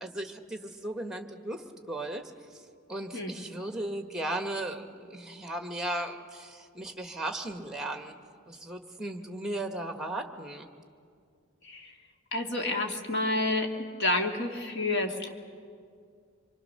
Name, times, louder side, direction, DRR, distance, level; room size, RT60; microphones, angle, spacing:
voice 1, 0.0-2.6 2.9-8.2 8.5-10.7, right 1 dB, 5° right, 5 dB, 1.4 m, -36 dB
voice 2, 11.6-12.0 12.3-13.7 14.0-15.3, left 2 dB, 55° left, 2 dB, 2.1 m, -29 dB
25.5 x 24.0 x 6.6 m, 2.2 s
head